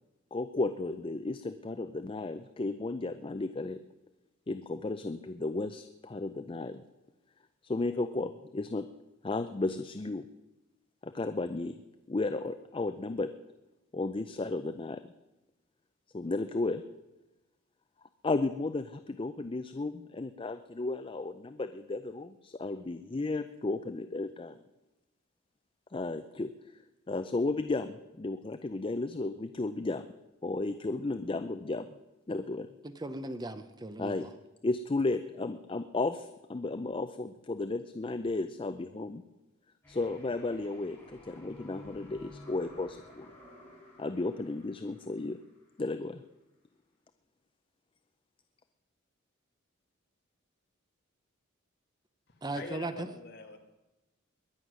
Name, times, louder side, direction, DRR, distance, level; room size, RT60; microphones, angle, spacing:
voice 1, 0.3-3.8 4.5-6.8 7.6-8.9 9.2-10.2 11.0-11.8 12.1-13.3 13.9-15.1 16.1-16.8 18.2-24.6 25.9-26.8 27.1-30.0 30.4-31.9 32.3-32.7 34.0-34.3 34.6-39.2 39.9-43.4 44.0-45.4 45.8-46.2, left 2 dB, 25° left, 10 dB, 0.4 m, -34 dB
voice 2, 32.8-34.2 52.4-53.1, right 2 dB, 20° right, 10 dB, 0.7 m, -37 dB
sound 1, 39.8-45.8, left 1 dB, 10° left, 5.2 m, -53 dB
voice 3, 52.3-53.6, left 3 dB, 55° left, 3 dB, 1.9 m, -44 dB
21.5 x 9.7 x 6.2 m, 1.0 s
head